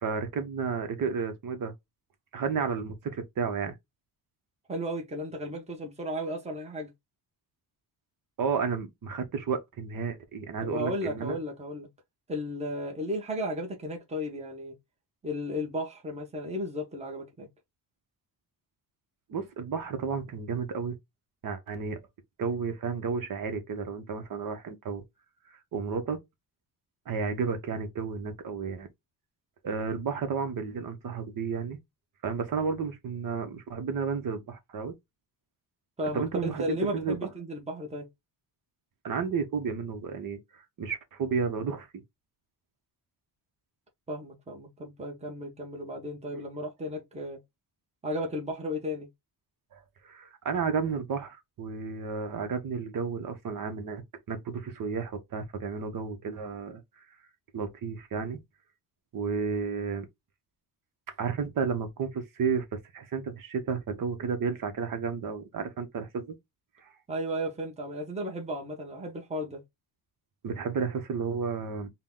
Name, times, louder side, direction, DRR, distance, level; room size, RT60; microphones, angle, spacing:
voice 1, 0.0-1.7 2.3-3.7 8.4-11.4 19.3-21.0 21.4-22.0 22.4-25.0 25.7-26.2 27.1-28.9 29.6-31.8 32.2-34.9 36.1-37.2 39.0-42.0 49.7-49.8 50.0-56.8 57.5-58.4 59.1-60.1 61.2-66.3 66.8-66.9 70.4-71.9, right 5 dB, 55° right, 1.1 m, -32 dB
voice 2, 4.7-6.9 10.6-11.9 12.3-14.7 15.2-17.5 36.0-38.1 44.1-47.4 48.0-49.1 67.1-69.6, equal, 15° right, 1.1 m, -34 dB
3.8 x 2.3 x 3.8 m
cardioid pair, 140°, 38 cm